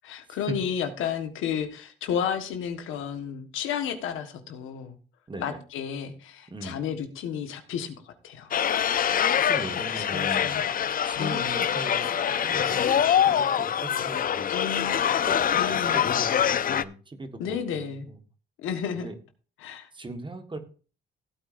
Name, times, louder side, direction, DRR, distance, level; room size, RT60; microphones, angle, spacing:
voice 1, 0.0-5.0 5.4-8.5 9.9-11.6 14.5-15.0 15.5-16.0 17.4-18.1 18.6-19.1 19.6-19.9, left 8 dB, 90° left, 7 dB, 1.5 m, -32 dB
voice 2, 5.3-5.6 6.5-6.8 8.8-10.6 11.0-12.9 13.2-14.5 15.3-18.2 18.9-19.2 19.9-20.6, right 2 dB, 25° right, 8 dB, 1.6 m, -39 dB
sound 1, 8.5-16.8, left 9 dB, 45° left, 0.6 m, -24 dB
16.0 x 8.7 x 2.6 m, 0.37 s
cardioid pair, 90°, 20 cm